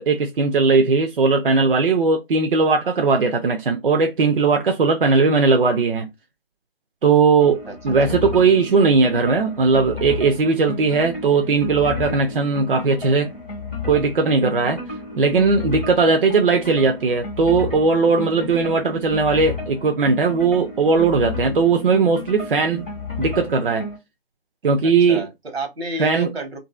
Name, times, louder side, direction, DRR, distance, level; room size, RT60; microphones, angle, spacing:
voice 1, 0.0-6.1 7.0-7.6 7.8-13.3 13.8-14.8 15.2-22.9 23.2-23.9 24.6-25.3 26.0-26.3, right 4 dB, 65° right, 0.5 m, -18 dB
sound 1, 7.4-24.0, left 3 dB, 10° left, 0.5 m, -33 dB
voice 2, 24.8-26.6, right 1 dB, 85° right, 1.2 m, -31 dB
2.6 x 2.5 x 2.4 m
figure-of-eight pair, 150°, 30 cm